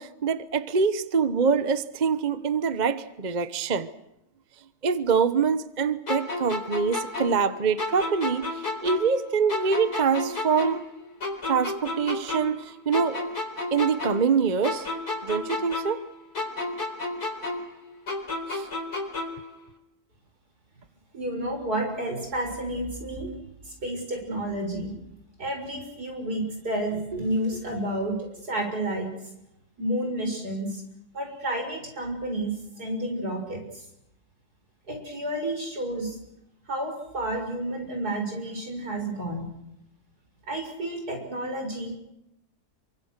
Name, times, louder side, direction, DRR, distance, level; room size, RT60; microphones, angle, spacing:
voice 1, 0.0-3.9 4.8-10.8 11.4-13.2 13.7-14.9 15.2-16.0 18.5-18.7, right 5 dB, 30° right, 1.0 m, -25 dB
sound 1, 6.1-9.2 9.5-12.6 12.9-16.1 16.3-19.5, left 2 dB, 75° left, 4.7 m, -32 dB
voice 2, 21.1-23.3 23.7-24.9 25.4-29.1 29.8-30.8 31.1-33.8 34.9-36.2 36.7-39.5 40.5-42.0, right 1 dB, 75° right, 7.5 m, -30 dB
27.5 x 24.5 x 6.7 m
omnidirectional pair, 1.7 m